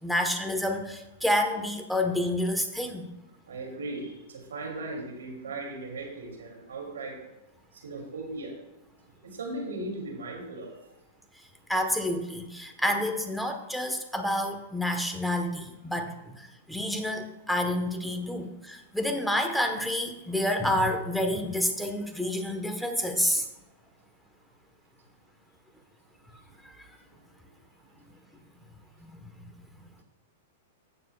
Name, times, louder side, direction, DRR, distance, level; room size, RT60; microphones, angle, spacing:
voice 1, 0.0-3.1 11.7-23.5 26.6-26.9 29.0-29.5, left 1 dB, ahead, 4 dB, 1.2 m, -29 dB
voice 2, 3.5-7.1 7.8-8.5 9.2-10.7, right 2 dB, 85° right, 0 dB, 2.8 m, -37 dB
16.0 x 6.8 x 2.4 m, 0.99 s
hypercardioid pair, 115°, 0 cm